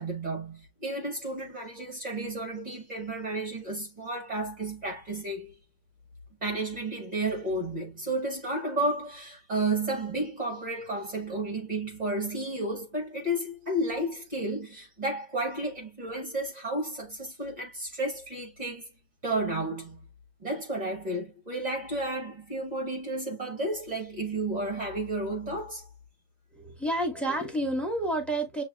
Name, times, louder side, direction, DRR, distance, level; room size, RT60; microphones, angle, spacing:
voice 1, 0.0-5.6 6.4-18.9 19.2-20.0 20.4-25.9, right 1 dB, 30° right, 0.8 m, -32 dB
voice 2, 26.5-28.6, right 1 dB, ahead, 0.7 m, -29 dB
7.2 x 2.8 x 2.3 m
omnidirectional pair, 2.2 m